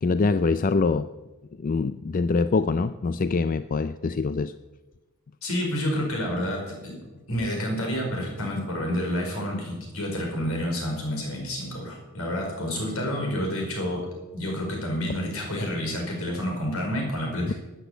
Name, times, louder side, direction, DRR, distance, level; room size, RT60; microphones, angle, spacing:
voice 1, 0.0-1.1 1.6-4.5 17.4-17.5, left 4 dB, 40° left, 13 dB, 0.4 m, -24 dB
voice 2, 5.4-7.0 7.3-14.0 14.3-17.5, equal, 75° left, 1 dB, 5.0 m, -29 dB
13.0 x 10.0 x 8.1 m, 1.1 s
head